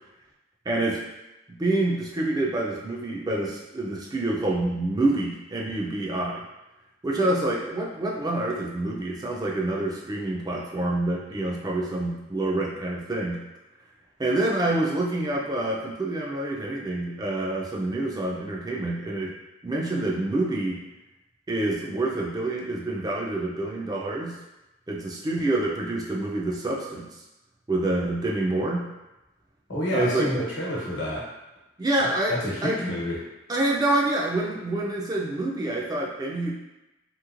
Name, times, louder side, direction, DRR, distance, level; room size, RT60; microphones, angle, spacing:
voice 1, 0.7-1.0 1.5-6.4 7.0-13.4 14.2-19.3 19.6-20.8 21.5-24.4 24.9-27.2 27.7-28.9 29.9-30.3 31.8-32.3 32.6-32.8 33.5-36.5, right 2 dB, 20° right, -3 dB, 0.3 m, -27 dB
voice 2, 29.7-31.2 32.0-33.2, left 1 dB, 80° left, -5 dB, 1.1 m, -28 dB
3.0 x 3.0 x 2.4 m, 0.99 s
head